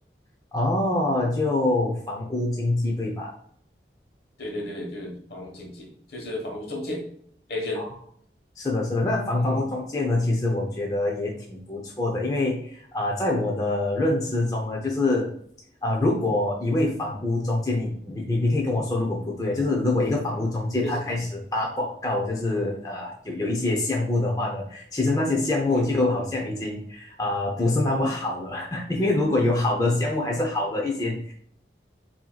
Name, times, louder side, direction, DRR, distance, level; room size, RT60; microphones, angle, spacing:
voice 1, 0.5-3.3 7.8-7.9 8.6-15.3 15.8-31.3, left 2 dB, 20° left, -2 dB, 0.6 m, -25 dB
voice 2, 4.4-7.0 7.5-7.8 9.3-9.7 20.8-20.9 25.6-25.9, left 1 dB, 65° left, 1 dB, 1.3 m, -34 dB
7.4 x 2.8 x 2.4 m, 0.63 s
head